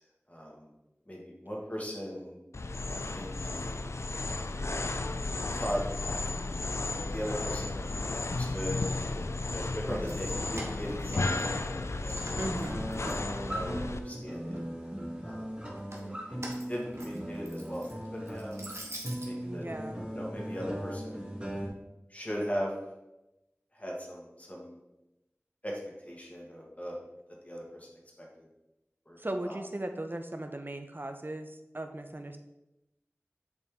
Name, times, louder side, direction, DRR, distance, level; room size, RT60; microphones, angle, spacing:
voice 1, 0.3-0.7 1.0-2.4 3.0-3.8 4.2-4.7 5.5-5.8 7.1-8.8 9.5-12.4 13.0-14.6 15.2-15.6 15.9-18.6 19.2-19.7 20.1-21.3 22.1-22.7 23.7-24.8 25.6-25.8 26.0-27.0 27.4-27.8 28.2-28.3 29.1-29.2 29.5-29.6, equal, 30° left, -2 dB, 1.7 m, -39 dB
sound 1, 2.5-14.0, left 2 dB, 75° left, 0.4 m, -33 dB
voice 2, 9.9-10.3 12.4-12.9 19.4-20.0 29.2-32.4, right 1 dB, 45° right, 6 dB, 0.6 m, -37 dB
Keys jangling, 9.9-11.8 12.1-13.7 14.1-14.9 15.6-19.3, right 1 dB, 70° right, 1.2 m, -46 dB
sound 2, 12.7-21.7, equal, 20° right, 1.4 m, -38 dB
7.0 x 4.2 x 3.6 m, 0.94 s
wide cardioid pair, 40°, 5 cm